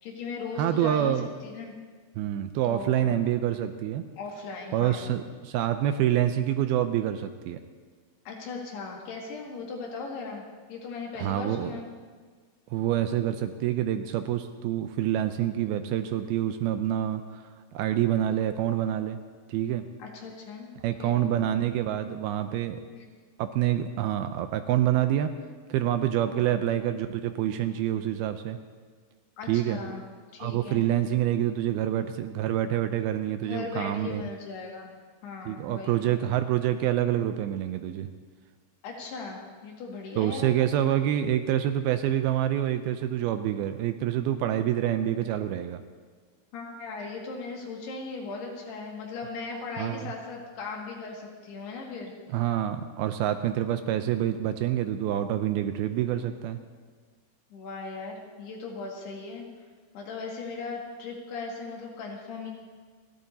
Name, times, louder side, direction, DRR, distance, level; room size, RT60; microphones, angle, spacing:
voice 1, 0.0-1.2 1.4-1.7 2.6-3.2 4.2-5.1 8.3-10.4 10.7-11.9 20.0-20.7 21.0-21.2 22.9-23.1 26.4-26.6 29.4-30.0 30.3-30.9 33.5-34.9 35.2-36.1 38.8-40.5 46.5-52.1 57.5-59.5 59.9-62.5, left 4 dB, 75° left, -1 dB, 4.1 m, -38 dB
voice 2, 0.6-1.3 2.2-4.1 4.7-7.6 11.2-11.7 12.7-17.4 17.7-19.2 19.5-19.8 20.8-22.8 23.4-25.3 25.7-28.6 29.5-29.8 30.4-34.2 35.5-38.1 40.2-45.8 49.8-50.1 52.3-56.6, right 11 dB, 80° right, 8 dB, 2.4 m, -27 dB
29.5 x 12.5 x 2.8 m, 1.5 s
omnidirectional pair, 4.7 m